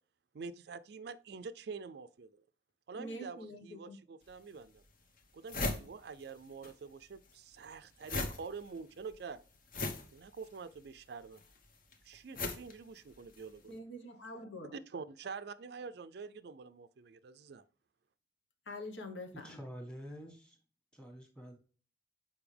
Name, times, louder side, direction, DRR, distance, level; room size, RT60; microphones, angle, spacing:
voice 1, 0.3-2.4 2.9-4.8 5.3-9.4 10.1-11.4 12.0-13.8 14.7-17.6, right 5 dB, 55° right, 0.4 m, -46 dB
voice 2, 2.9-4.0 13.7-14.7 18.7-19.6, left 1 dB, 80° left, 1.3 m, -45 dB
sound 1, 4.2-4.3 4.9-5.0 5.2-6.7 7.0-13.6, left 2 dB, 45° left, 1.0 m, -40 dB
voice 3, 19.3-20.6 20.9-21.6, equal, 5° left, 1.6 m, -48 dB
7.0 x 5.1 x 3.3 m
head